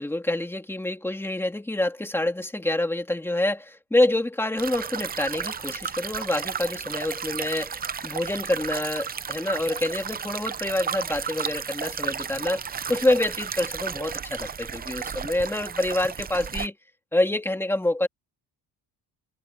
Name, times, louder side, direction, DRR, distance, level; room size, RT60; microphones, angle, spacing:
voice 1, 0.0-12.6 12.9-16.8 17.1-18.1, left 1 dB, 5° left, 2.5 m, -27 dB
sound 1, 4.6-16.7, right 7 dB, 20° right, 0.5 m, -33 dB
cardioid pair, 155°, 43 cm